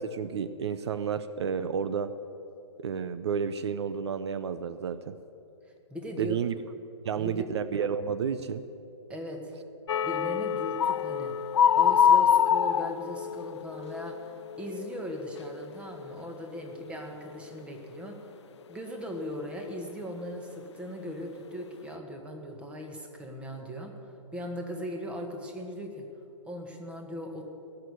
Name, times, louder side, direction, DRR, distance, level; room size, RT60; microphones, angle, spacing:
voice 1, 0.0-2.1 2.8-5.2 6.2-6.5 7.0-8.7, right 7 dB, 65° right, 12 dB, 0.7 m, -31 dB
voice 2, 5.9-6.4 7.2-7.5 9.1-9.5 10.0-11.3 11.7-18.4 18.7-26.1 26.5-27.4, equal, 5° right, 3 dB, 1.7 m, -39 dB
sound 1, 9.9-15.7 15.9-16.3 16.7-16.9, left 8 dB, 70° left, 0.5 m, -26 dB
18.0 x 6.8 x 9.7 m, 2.7 s
hypercardioid pair, 135°, 15 cm